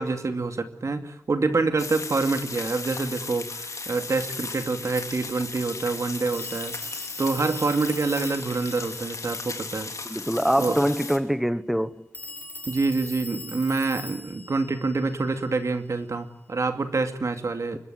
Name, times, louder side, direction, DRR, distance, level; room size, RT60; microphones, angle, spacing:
voice 1, 0.0-9.9 10.6-10.8 12.7-17.8, right 3 dB, 65° right, 2.5 m, -27 dB
sound 1, 1.8-11.2, left 4 dB, 70° left, 3.1 m, -36 dB
Telephone, 6.3-10.0 12.1-15.8, left 1 dB, 30° left, 3.9 m, -42 dB
voice 2, 10.1-12.1, equal, 5° right, 1.1 m, -24 dB
25.0 x 22.0 x 9.2 m
wide cardioid pair, 75°, 6 cm